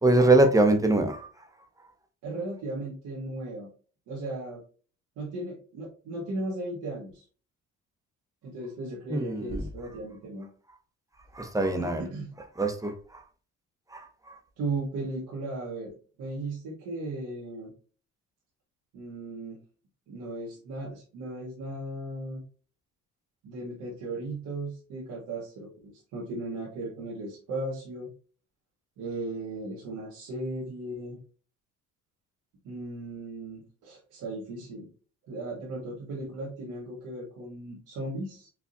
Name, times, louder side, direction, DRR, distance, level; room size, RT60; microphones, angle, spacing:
voice 1, 0.0-1.3 9.1-9.6 11.3-12.0 12.6-13.2 13.9-14.4, right 2 dB, 10° right, 5 dB, 0.7 m, -23 dB
voice 2, 2.2-3.7 4.1-4.6 5.2-7.2 8.4-10.5 11.8-12.3 14.6-17.7 18.9-19.6 20.1-22.4 23.4-28.1 29.0-31.2 32.6-34.9 35.3-38.5, right 2 dB, 85° right, -5 dB, 1.2 m, -36 dB
4.6 x 2.4 x 2.5 m, 0.39 s
cardioid pair, 90°, 30 cm